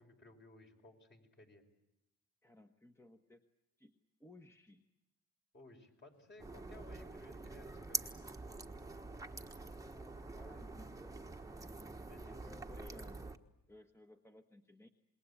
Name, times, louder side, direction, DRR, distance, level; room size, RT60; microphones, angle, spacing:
voice 1, 0.0-1.6 5.5-8.2 12.1-12.5, left 2 dB, 35° left, 3 dB, 4.9 m, -59 dB
voice 2, 2.4-3.4 3.8-3.9 4.2-4.8 9.6-11.1 12.3-13.3 13.7-14.9, left 2 dB, 10° left, 5 dB, 1.3 m, -59 dB
sound 1, 6.1-12.2, left 3 dB, 80° left, 3.8 m, -74 dB
sound 2, 6.4-13.4, right 3 dB, 10° right, 1.3 m, -46 dB
27.0 x 21.0 x 8.5 m, 0.88 s
cardioid pair, 90°, 30 cm